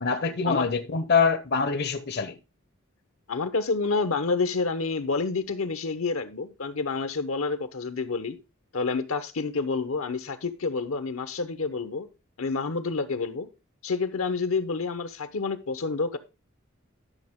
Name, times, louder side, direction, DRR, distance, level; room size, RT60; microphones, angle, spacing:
voice 1, 0.0-2.4, left 5 dB, 50° left, 0.8 m, -25 dB
voice 2, 3.3-8.4 8.7-12.1 12.4-13.5 13.8-16.2, left 4 dB, 75° left, 0.9 m, -28 dB
11.0 x 6.4 x 3.6 m
head